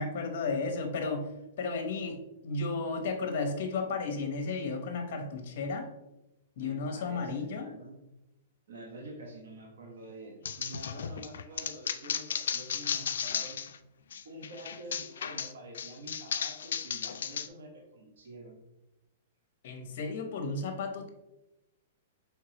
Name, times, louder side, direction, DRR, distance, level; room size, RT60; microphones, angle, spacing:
voice 1, 0.0-1.3 1.6-5.9 6.6-7.7 19.6-21.1, left 3 dB, 55° left, 4 dB, 0.9 m, -33 dB
voice 2, 6.6-8.0 8.7-13.7 14.2-18.6, right 1 dB, 80° right, 0 dB, 1.1 m, -47 dB
sound 1, 10.5-13.8 14.1-17.5, left 7 dB, 80° left, 0.3 m, -35 dB
4.5 x 3.4 x 2.9 m, 0.94 s
hypercardioid pair, 145°, 0 cm